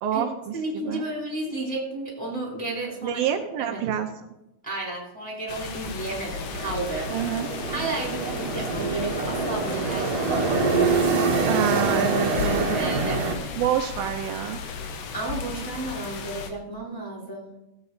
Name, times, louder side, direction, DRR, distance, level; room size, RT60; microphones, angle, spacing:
voice 1, 0.0-1.0 3.0-4.1 7.1-7.5 11.5-12.8 13.6-14.9, right 9 dB, 80° right, 5 dB, 2.4 m, -27 dB
voice 2, 0.5-3.2 3.6-4.0 4.6-7.1 7.7-10.7 12.3-13.2 15.1-17.5, right 2 dB, ahead, -4 dB, 2.7 m, -32 dB
sound 1, 5.5-16.5, left 5 dB, 70° left, 1.8 m, -35 dB
sound 2, 6.4-13.4, right 4 dB, 55° right, 2.2 m, -25 dB
17.0 x 8.0 x 4.0 m, 0.91 s
omnidirectional pair, 4.3 m